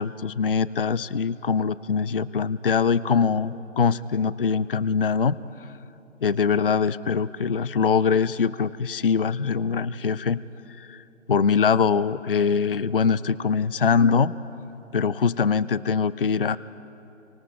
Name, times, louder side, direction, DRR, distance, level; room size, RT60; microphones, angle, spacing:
voice 1, 0.0-5.4 6.2-10.4 10.8-11.0 11.3-14.4 14.9-16.6, left 6 dB, 45° left, 18 dB, 0.4 m, -23 dB
29.0 x 24.5 x 4.8 m, 3.0 s
figure-of-eight pair, 155°, 39 cm